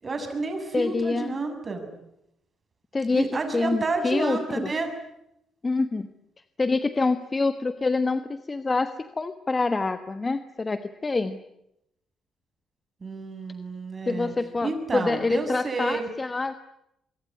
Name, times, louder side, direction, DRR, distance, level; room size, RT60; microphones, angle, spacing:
voice 1, 0.0-1.9 3.1-4.9 13.0-14.3 14.6-16.1, right 3 dB, 35° right, 5 dB, 7.2 m, -30 dB
voice 2, 0.7-1.4 2.9-3.3 3.5-4.7 5.6-6.1 6.6-11.4 14.1-16.5, left 3 dB, 25° left, 10 dB, 1.3 m, -26 dB
25.0 x 23.0 x 9.9 m, 0.82 s
cardioid pair, 90°, 0 cm